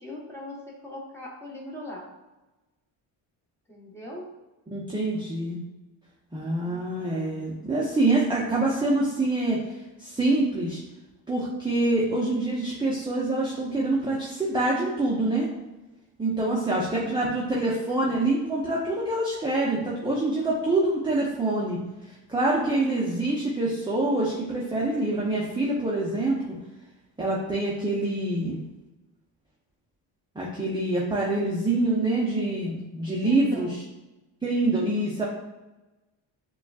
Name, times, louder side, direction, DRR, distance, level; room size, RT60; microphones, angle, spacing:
voice 1, 0.0-2.1 3.7-4.3 16.4-17.2 33.2-33.8, left 2 dB, 5° left, -4 dB, 1.2 m, -41 dB
voice 2, 4.7-5.6 6.3-9.6 10.0-10.8 11.3-15.5 16.2-21.8 22.3-26.4 27.2-28.6 30.3-33.7 34.4-35.2, right 2 dB, 10° right, -5 dB, 0.7 m, -25 dB
6.7 x 2.4 x 2.4 m, 1.1 s
cardioid pair, 95°, 45 cm